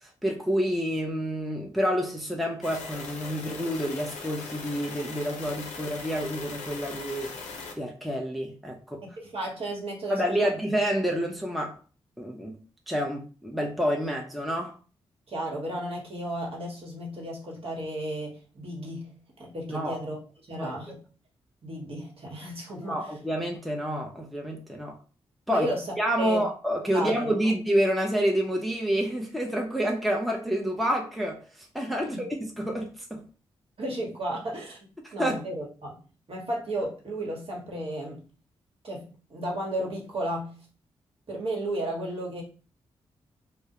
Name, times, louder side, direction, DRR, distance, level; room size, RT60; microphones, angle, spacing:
voice 1, 0.2-7.3 7.8-9.0 10.1-11.7 12.2-12.6 12.9-14.7 19.7-20.0 20.6-21.0 22.7-25.0 25.5-25.7 26.0-33.2 35.0-35.4, equal, ahead, 0.6 m, -28 dB
sound 1, 2.6-7.7, left 4 dB, 85° left, 0.5 m, -40 dB
voice 2, 9.0-10.5 15.3-19.1 19.4-20.2 20.5-21.0 21.6-23.1 25.5-26.4 26.9-27.3 32.0-32.2 33.8-34.9 35.1-36.0 36.3-38.2 38.8-40.6 41.3-42.4, right 1 dB, 55° right, 1.1 m, -33 dB
2.2 x 2.0 x 2.8 m
supercardioid pair, 40°, 12 cm